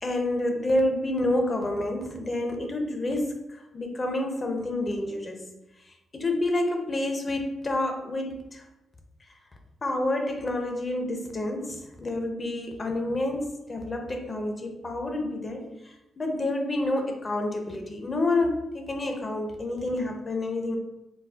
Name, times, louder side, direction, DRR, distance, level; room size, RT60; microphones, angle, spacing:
voice 1, 0.0-5.5 5.8-8.6 9.8-20.8, left 1 dB, 35° left, 4 dB, 0.5 m, -29 dB
4.0 x 2.0 x 2.3 m, 0.94 s
cardioid pair, 85°, 0 cm